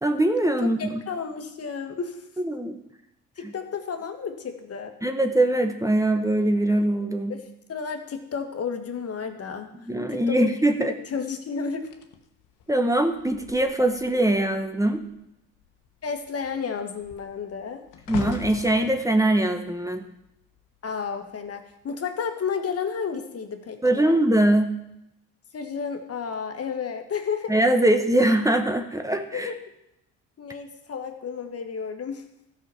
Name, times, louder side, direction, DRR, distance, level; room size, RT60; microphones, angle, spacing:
voice 1, 0.0-1.0 2.4-2.8 5.0-7.4 9.9-10.9 12.7-15.0 18.1-20.0 23.8-24.7 27.5-29.5, right 1 dB, 10° right, 6 dB, 1.1 m, -22 dB
voice 2, 0.6-2.2 3.4-4.9 7.3-7.4 7.7-10.5 10.9-11.9 16.0-17.8 20.8-24.2 25.5-27.5 29.3-29.6 30.4-32.2, left 6 dB, 45° left, 6 dB, 1.7 m, -32 dB
sound 1, 11.8-14.6 14.9-15.2 15.6-20.9 21.6-21.9, left 8 dB, 70° left, 1.3 m, -41 dB
13.0 x 5.9 x 7.1 m, 0.83 s
supercardioid pair, 65°, 33 cm